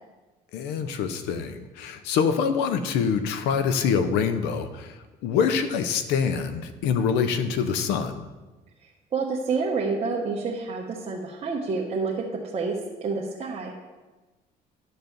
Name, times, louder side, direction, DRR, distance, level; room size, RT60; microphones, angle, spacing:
voice 1, 0.5-8.3, left 6 dB, 90° left, 10 dB, 0.8 m, -25 dB
voice 2, 9.1-13.7, right 4 dB, 35° right, -3 dB, 1.2 m, -28 dB
10.5 x 4.0 x 7.1 m, 1.2 s
cardioid pair, 110°, 17 cm